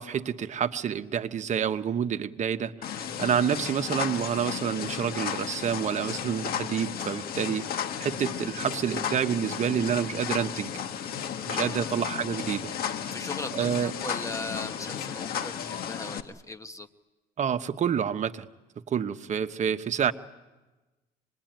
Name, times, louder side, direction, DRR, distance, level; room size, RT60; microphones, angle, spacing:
voice 1, 0.0-2.7 3.2-7.7 8.0-10.8 11.5-12.7 13.6-13.9 17.4-18.5 18.9-20.1, right 8 dB, 45° right, 10 dB, 1.1 m, -28 dB
sound 1, 2.8-16.2, left 8 dB, 65° left, 1.7 m, -34 dB
voice 2, 11.5-11.9 13.1-16.9, left 2 dB, 20° left, 9 dB, 1.0 m, -39 dB
26.0 x 20.5 x 9.1 m, 1.1 s
cardioid pair, 110°, 17 cm